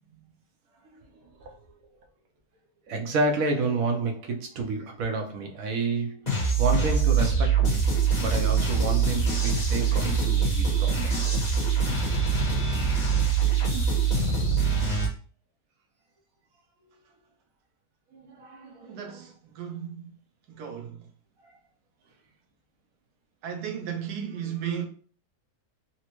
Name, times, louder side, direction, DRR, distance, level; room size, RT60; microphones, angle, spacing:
voice 1, 1.2-1.7 2.9-7.8 8.2-11.4 18.1-19.3, right 3 dB, 65° right, 1.0 m, -30 dB
sound 1, 6.3-15.1, right 5 dB, 30° left, 1.2 m, -24 dB
voice 2, 18.8-20.1 20.6-21.0 23.4-24.9, right 8 dB, 90° right, 1.2 m, -34 dB
4.1 x 2.1 x 2.9 m
omnidirectional pair, 1.6 m